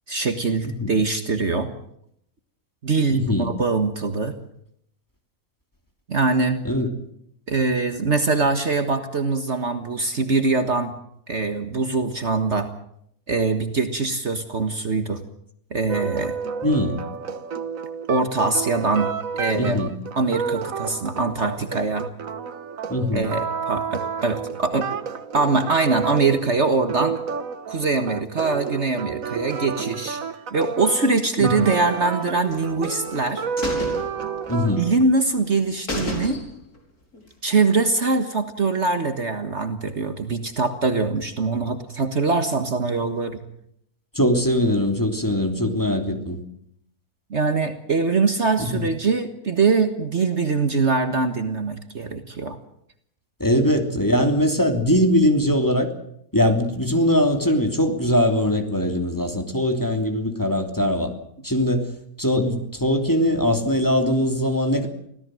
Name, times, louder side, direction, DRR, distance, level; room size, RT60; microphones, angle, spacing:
voice 1, 0.1-1.7 2.8-4.3 6.1-6.6 7.5-10.9 11.3-12.7 13.3-15.2 15.7-16.3 18.1-19.1 19.4-19.8 20.2-22.1 23.1-24.9 25.3-27.2 27.7-30.2 30.5-33.4 34.8-36.4 37.4-43.4 47.3-52.6, right 3 dB, 50° right, 8 dB, 1.9 m, -23 dB
voice 2, 3.1-3.5 6.6-6.9 16.6-17.0 19.5-19.9 22.9-23.3 31.4-31.7 34.5-34.8 44.1-46.4 48.6-48.9 53.4-55.9 56.3-61.1 61.4-61.9 62.2-64.9, equal, 10° left, 4 dB, 3.1 m, -21 dB
sound 1, 15.9-35.0, right 6 dB, 65° right, 1.6 m, -30 dB
sound 2, 32.5-33.2 33.6-34.9 35.2-35.3 35.6-35.7 35.9-36.8 37.1-37.2, left 2 dB, 85° left, 5.4 m, -31 dB
25.5 x 17.0 x 7.8 m, 0.73 s
omnidirectional pair, 1.6 m